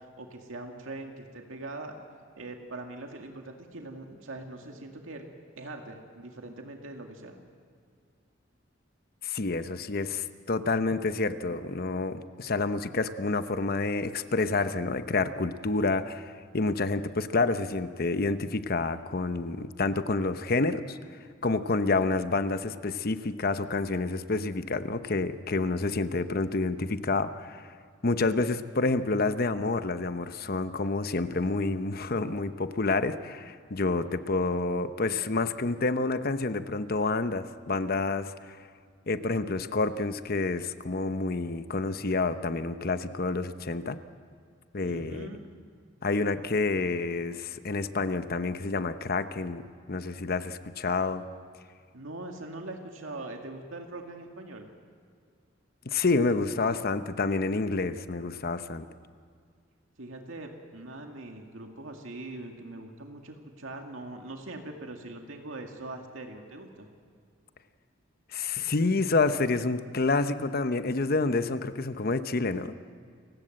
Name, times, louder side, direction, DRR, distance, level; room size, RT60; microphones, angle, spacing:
voice 1, 0.0-2.0 2.3-5.3 5.6-7.4 44.8-45.5 51.9-54.7 60.0-66.9, right 2 dB, 90° right, 3 dB, 2.1 m, -42 dB
voice 2, 9.2-21.0 21.4-27.7 28.0-38.6 39.1-44.0 44.7-45.3 46.0-51.3 55.9-58.9 68.3-72.7, left 3 dB, 50° left, 11 dB, 0.9 m, -28 dB
29.0 x 16.5 x 7.7 m, 2.1 s
head